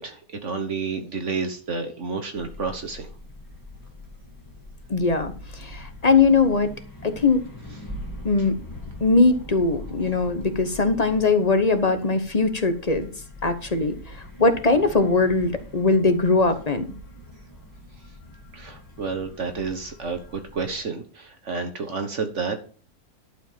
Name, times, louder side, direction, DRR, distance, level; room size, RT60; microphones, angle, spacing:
voice 1, 0.0-3.1 18.5-22.6, right 4 dB, 55° right, 6 dB, 1.4 m, -30 dB
sound 1, 2.4-20.8, left 1 dB, 15° left, 1.9 m, -42 dB
voice 2, 4.9-6.7 7.0-7.4 8.2-8.5 9.0-13.1 13.4-16.9, left 3 dB, 30° left, 9 dB, 1.0 m, -21 dB
11.5 x 5.0 x 7.4 m, 0.41 s
omnidirectional pair, 1.6 m